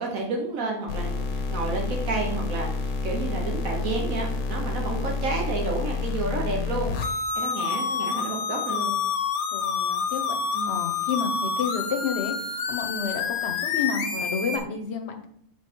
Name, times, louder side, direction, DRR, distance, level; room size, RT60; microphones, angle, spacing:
voice 1, 0.0-9.0 10.5-10.8, right 3 dB, 70° right, 0 dB, 1.4 m, -31 dB
sound 1, 0.9-14.6, left 4 dB, 80° left, 1.2 m, -28 dB
voice 2, 9.5-10.4 10.6-15.3, left 5 dB, 55° left, 5 dB, 1.0 m, -31 dB
6.2 x 4.0 x 4.5 m, 0.67 s
omnidirectional pair, 1.5 m